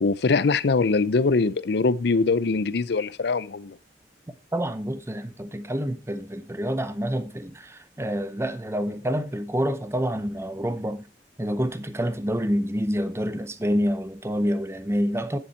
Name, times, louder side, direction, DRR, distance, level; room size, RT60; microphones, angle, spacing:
voice 1, 0.0-3.8, left 4 dB, 70° left, 0.5 m, -22 dB
voice 2, 4.3-11.0 11.4-15.4, equal, 15° right, 0.7 m, -27 dB
9.8 x 7.2 x 4.4 m
head